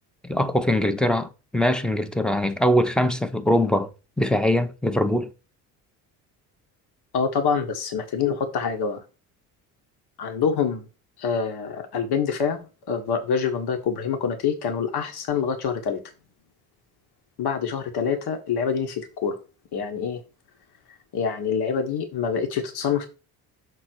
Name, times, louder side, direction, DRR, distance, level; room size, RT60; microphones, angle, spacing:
voice 1, 0.2-3.9 4.2-5.3, left 1 dB, ahead, 0.9 m, -22 dB
voice 2, 7.1-9.0 10.2-10.9 11.2-16.0 17.4-19.4 19.7-20.2 21.1-23.1, left 6 dB, 55° left, 1.6 m, -26 dB
6.7 x 4.0 x 4.6 m
hypercardioid pair, 55°, 46 cm